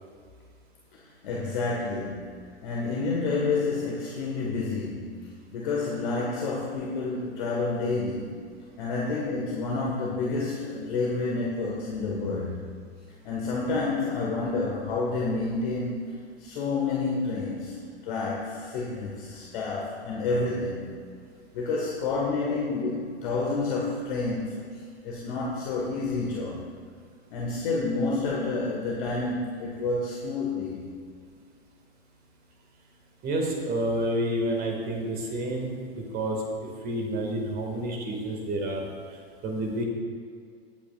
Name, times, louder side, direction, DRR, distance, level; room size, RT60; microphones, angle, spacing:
voice 1, 1.0-8.4 8.8-12.7 13.3-16.0 16.4-17.8 18.0-20.9 21.5-26.7 27.3-30.9, left 3 dB, 50° left, -3 dB, 1.8 m, -29 dB
voice 2, 33.2-36.4 36.8-38.9 39.4-39.9, right 1 dB, 30° right, 1 dB, 2.2 m, -29 dB
20.5 x 8.6 x 2.5 m, 2.1 s
figure-of-eight pair, 95°, 32 cm